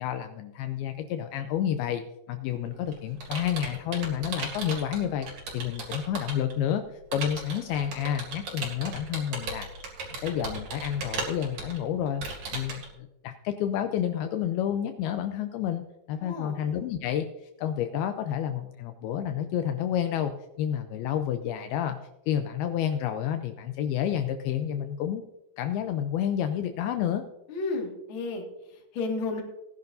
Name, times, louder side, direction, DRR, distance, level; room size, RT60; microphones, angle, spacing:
voice 1, 0.0-2.0 2.3-5.3 5.5-6.8 7.1-9.7 10.2-12.2 12.5-17.3 17.6-20.3 20.6-22.0 22.3-25.2 25.6-27.2, left 10 dB, 90° left, 7 dB, 2.2 m, -29 dB
Computer keyboard, 2.5-6.5 7.1-12.9, right 3 dB, 50° right, 3.5 m, -37 dB
voice 2, 16.2-16.6 27.5-29.4, left 3 dB, 45° left, 1 dB, 1.6 m, -33 dB
18.5 x 10.5 x 2.6 m, 0.92 s
omnidirectional pair, 5.1 m